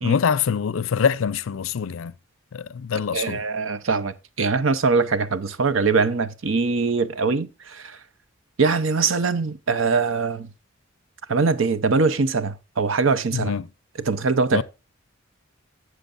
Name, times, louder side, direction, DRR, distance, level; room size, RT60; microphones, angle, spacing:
voice 1, 0.0-2.1 2.5-3.4 13.3-13.7 14.5-14.6, left 6 dB, 75° left, 0.4 m, -24 dB
voice 2, 3.1-8.0 8.6-10.5 11.3-13.6 14.1-14.6, right 4 dB, 70° right, 0.7 m, -22 dB
13.5 x 7.8 x 2.5 m
head